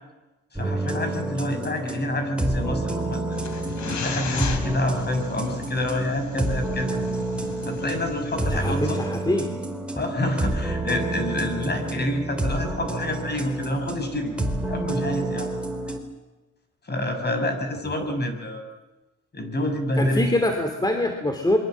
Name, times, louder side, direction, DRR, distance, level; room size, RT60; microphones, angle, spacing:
voice 1, 0.5-3.4 3.8-7.0 7.7-9.0 10.0-14.3 14.6-15.5 16.8-18.6 19.3-20.3, left 1 dB, 35° left, 6 dB, 6.1 m, -27 dB
sound 1, 0.6-16.0, right 2 dB, 5° right, 4.3 m, -29 dB
sound 2, 3.3-9.1, left 6 dB, 65° left, 3.5 m, -36 dB
voice 2, 8.4-9.5 18.0-18.2 20.0-21.6, left 1 dB, 15° left, 5 dB, 2.9 m, -24 dB
27.0 x 23.5 x 7.5 m, 1.1 s
cardioid pair, 90°, 30 cm